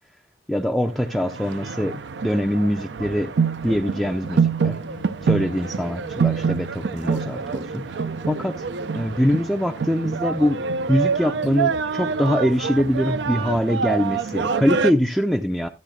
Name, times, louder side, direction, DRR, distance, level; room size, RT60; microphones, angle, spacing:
voice 1, 0.5-3.3 3.6-4.8 5.2-7.9 8.3-8.6 9.0-10.6 10.9-15.7, equal, ahead, 0.5 m, -23 dB
sound 1, 0.9-14.9, right 5 dB, 85° right, 0.5 m, -26 dB
sound 2, 4.8-10.4, left 1 dB, 45° left, 0.9 m, -44 dB
13.5 x 9.1 x 2.3 m
head